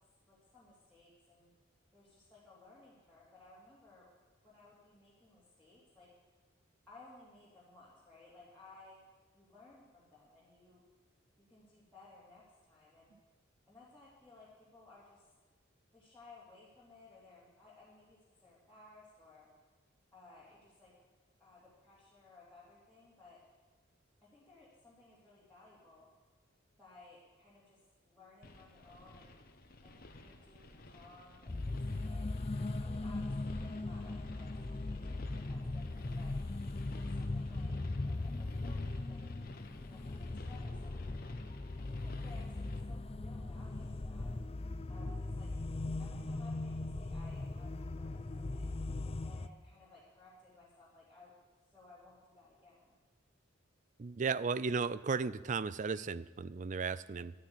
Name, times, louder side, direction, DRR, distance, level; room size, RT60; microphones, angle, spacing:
voice 1, 0.3-1.5 1.9-4.1 4.4-6.1 6.9-9.0 9.3-10.8 11.4-13.1 13.7-15.2 15.9-19.5 20.1-20.9 21.4-23.4 24.3-26.0 26.8-27.8 28.0-29.3 29.8-31.5 31.9-32.3 32.8-34.5 34.7-36.3 36.9-39.2 39.8-41.3 41.9-42.5 42.9-44.3 44.9-45.5 46.0-48.7 49.2-51.3 51.7-52.9, left 3 dB, 5° left, -10 dB, 3.0 m, -59 dB
sound 1, 28.4-42.8, left 2 dB, 45° left, 1.2 m, -54 dB
sound 2, 31.5-49.5, left 2 dB, 30° left, 0.5 m, -39 dB
voice 2, 54.0-57.3, right 5 dB, 40° right, 17 dB, 0.4 m, -35 dB
11.5 x 9.5 x 10.0 m, 1.3 s
head